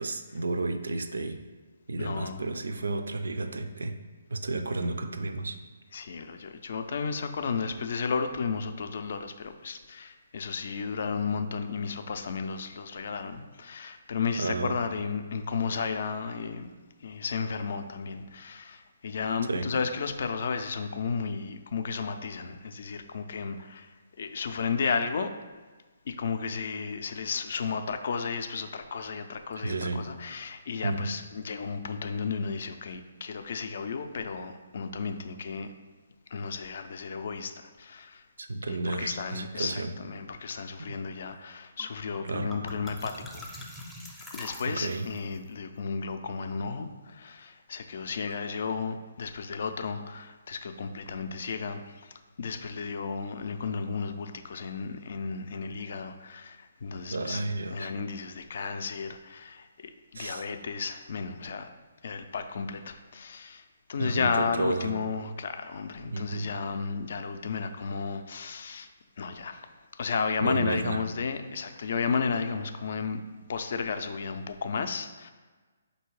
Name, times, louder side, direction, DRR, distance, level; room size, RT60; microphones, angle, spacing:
voice 1, 0.0-1.4 1.9-4.0 4.3-5.6 14.4-14.7 19.5-19.7 29.6-30.0 30.8-31.1 38.4-39.9 40.8-40.9 42.2-42.5 44.7-45.1 57.1-57.9 60.1-60.4 64.0-64.9 66.1-66.5 70.4-71.0, right 2 dB, 80° right, 8 dB, 0.4 m, -32 dB
voice 2, 2.0-2.4 5.9-16.7 17.0-23.9 24.2-25.3 26.1-35.7 36.3-38.2 38.7-43.5 44.3-57.4 57.7-61.7 62.0-63.6 63.9-68.9 69.2-69.6 70.0-73.2 73.5-75.3, left 5 dB, 60° left, 8 dB, 0.4 m, -33 dB
sound 1, 41.8-41.9 42.1-45.2, left 1 dB, ahead, 0.5 m, -43 dB
3.7 x 2.7 x 4.6 m, 1.3 s
hypercardioid pair, 150°, 0 cm